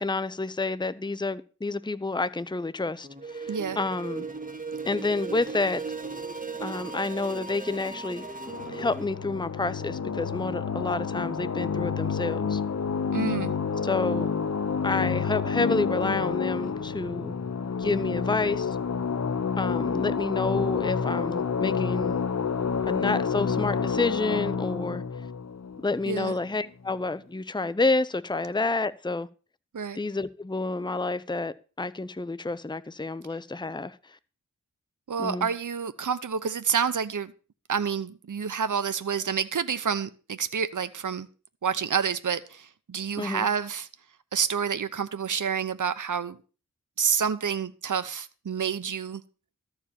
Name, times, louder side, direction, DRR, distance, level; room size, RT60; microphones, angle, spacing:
voice 1, 0.0-4.3 4.9-5.8 6.6-8.3 8.7-12.6 13.8-14.3 14.8-17.3 17.8-18.8 19.6-22.2 22.9-25.0 25.8-29.3 30.0-34.0 35.2-35.5 43.2-43.5, left 3 dB, 15° left, 0.7 m, -29 dB
sound 1, 3.0-9.1, right 4 dB, 25° right, 1.9 m, -37 dB
voice 2, 3.5-3.8 13.1-13.5 26.1-26.3 29.7-30.0 35.1-37.3 37.7-41.3 41.6-43.9 44.3-46.4 47.0-49.2, right 6 dB, 65° right, 0.9 m, -28 dB
sound 2, 8.4-26.5, left 6 dB, 50° left, 0.9 m, -29 dB
13.5 x 4.9 x 8.6 m
cardioid pair, 45°, 33 cm